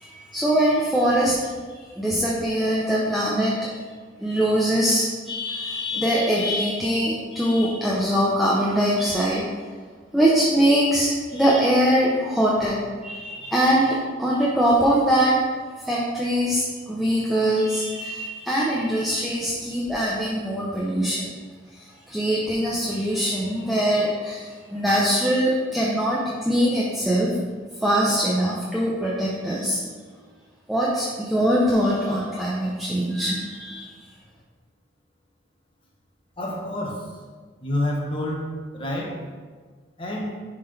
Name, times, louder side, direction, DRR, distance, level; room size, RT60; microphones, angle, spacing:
voice 1, 0.0-1.5 2.0-3.5 4.2-9.4 10.1-15.3 15.8-21.3 21.7-21.8 22.1-27.3 27.8-29.9 30.7-33.9, equal, ahead, -6 dB, 0.7 m, -22 dB
voice 2, 36.4-37.1 37.6-38.5 38.7-39.2 40.0-40.4, left 1 dB, 25° left, -3 dB, 1.2 m, -28 dB
11.0 x 3.8 x 3.4 m, 1.5 s
head